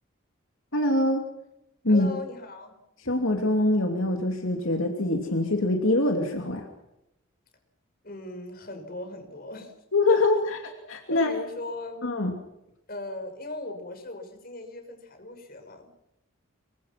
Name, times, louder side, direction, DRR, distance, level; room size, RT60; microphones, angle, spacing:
voice 1, 0.7-1.2 1.8-2.1 3.1-6.7 9.9-11.3 12.0-12.3, left 2 dB, 70° left, 3 dB, 2.8 m, -24 dB
voice 2, 1.9-2.8 8.0-9.7 10.1-10.2 11.1-12.1 12.9-15.9, left 2 dB, 45° left, 6 dB, 5.8 m, -38 dB
26.0 x 24.5 x 6.0 m, 0.87 s
head